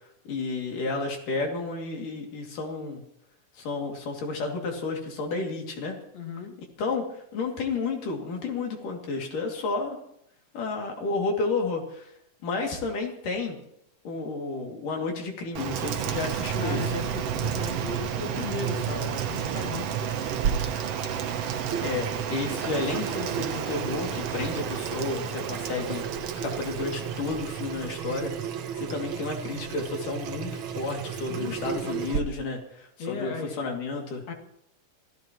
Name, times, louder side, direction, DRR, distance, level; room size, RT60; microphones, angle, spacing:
voice 1, 0.3-3.0 3.5-6.0 6.8-10.0 10.5-12.1 12.4-13.6 14.0-16.8 21.8-26.0 26.3-28.3 28.8-34.2, left 3 dB, 75° left, 1 dB, 4.2 m, -31 dB
voice 2, 6.1-6.6 16.6-20.2 31.3-32.0 33.0-33.6 34.3-34.4, left 5 dB, 55° left, 2 dB, 3.2 m, -36 dB
Rain, 15.5-28.0, right 8 dB, 65° right, 1.7 m, -31 dB
Water tap faucet / Sink (filling or washing), 20.4-32.2, right 8 dB, 85° right, 1.1 m, -34 dB
26.0 x 15.5 x 3.1 m, 0.74 s
omnidirectional pair, 3.8 m